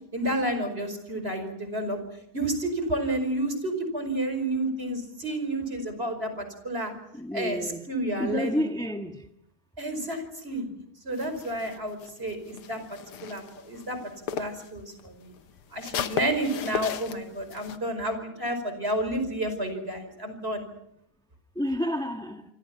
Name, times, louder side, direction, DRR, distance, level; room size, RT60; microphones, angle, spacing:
voice 1, 0.1-2.0 2.3-6.9 7.3-7.6 7.9-8.6 9.8-10.7 11.0-14.0 14.3-15.3 15.7-20.7, right 1 dB, 25° right, 8 dB, 5.3 m, -30 dB
voice 2, 7.1-7.8 8.2-9.3 21.5-22.4, equal, ahead, 4 dB, 1.0 m, -30 dB
sound 1, 11.1-14.7 15.0-17.8, left 8 dB, 85° left, 2.1 m, -36 dB
27.0 x 25.5 x 6.0 m, 0.73 s
omnidirectional pair, 2.4 m